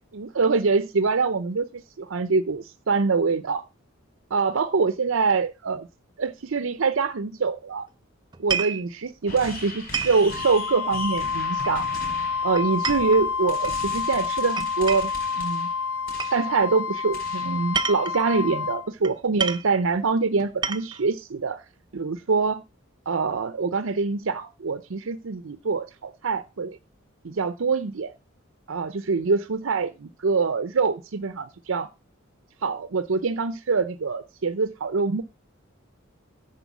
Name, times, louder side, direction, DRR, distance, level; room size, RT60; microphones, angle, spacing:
voice 1, 0.1-3.6 4.3-5.9 6.2-7.9 8.4-11.9 12.4-15.1 15.4-15.7 16.3-21.6 21.9-22.6 23.1-26.8 27.2-28.1 28.7-31.9 32.6-35.2, right 4 dB, 70° right, 0.6 m, -25 dB
sound 1, 8.3-8.8 9.9-10.2 11.6-12.0 12.6-13.8 14.6-15.2 16.2-16.4 17.5-18.3 19.0-19.1 19.4-19.7 20.4-21.0, right 6 dB, 20° right, 0.5 m, -30 dB
sound 2, 9.3-16.6 17.1-17.7, left 2 dB, 45° left, 5.4 m, -39 dB
Wind instrument woodwind instrument, 10.3-18.8, left 5 dB, 80° left, 2.2 m, -28 dB
10.0 x 4.4 x 7.2 m
head